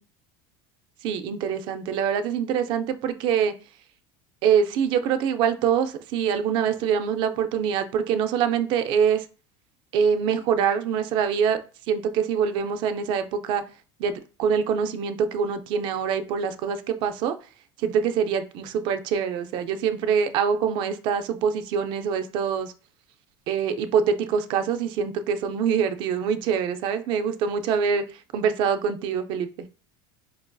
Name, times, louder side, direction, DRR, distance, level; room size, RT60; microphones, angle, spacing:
voice 1, 1.0-3.5 4.4-9.3 9.9-11.6 11.9-13.6 14.0-17.4 17.8-22.7 23.5-28.0 28.3-29.7, right 7 dB, 40° right, 9 dB, 0.4 m, -24 dB
5.1 x 2.5 x 2.2 m, 0.36 s
cardioid pair, 175°, 12 cm